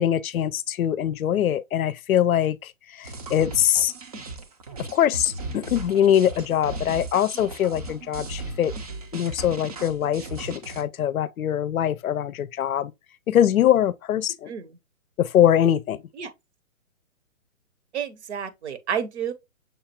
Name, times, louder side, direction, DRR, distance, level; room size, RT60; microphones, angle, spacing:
voice 1, 0.0-3.9 4.9-8.7 9.1-12.9 13.3-14.5 15.2-16.0, left 10 dB, 85° left, 0.5 m, -23 dB
sound 1, 3.0-10.8, right 2 dB, 30° right, 0.5 m, -36 dB
voice 2, 17.9-19.3, right 8 dB, 55° right, 0.9 m, -30 dB
6.4 x 2.4 x 2.8 m
hypercardioid pair, 145°, 41 cm